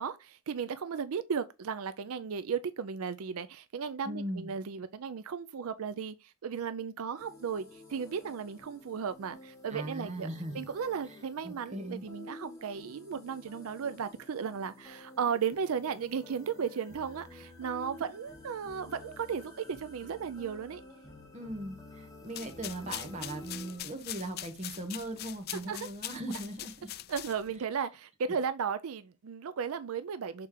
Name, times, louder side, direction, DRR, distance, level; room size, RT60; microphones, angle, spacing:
voice 1, 0.0-10.3 10.5-20.8 25.7-25.9 27.1-30.5, right 6 dB, 75° right, 0.4 m, -35 dB
voice 2, 4.0-4.5 9.7-10.7 11.4-12.0 21.3-26.9, right 1 dB, 30° right, 1.4 m, -39 dB
sound 1, 7.2-23.8, left 2 dB, 15° left, 2.0 m, -51 dB
sound 2, 22.2-27.6, left 14 dB, 45° left, 0.3 m, -43 dB
6.6 x 4.2 x 3.6 m
head